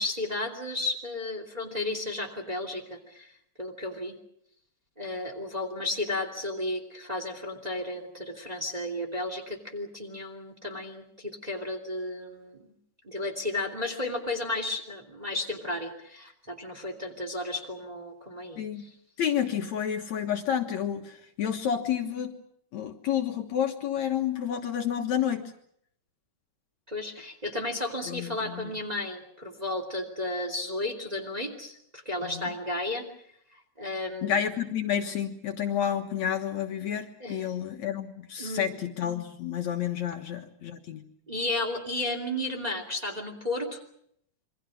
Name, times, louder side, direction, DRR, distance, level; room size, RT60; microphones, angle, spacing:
voice 1, 0.0-3.3 3.6-4.1 5.0-12.7 13.0-18.9 26.9-33.1 33.8-34.4 37.2-37.5 38.4-38.7 41.3-43.8, left 2 dB, 15° right, 3 dB, 2.5 m, -33 dB
voice 2, 18.6-18.9 19.2-22.3 22.7-25.5 28.1-28.7 32.2-32.5 34.2-41.0, left 9 dB, 60° left, 4 dB, 2.5 m, -30 dB
27.5 x 23.5 x 6.4 m, 0.70 s
omnidirectional pair, 3.9 m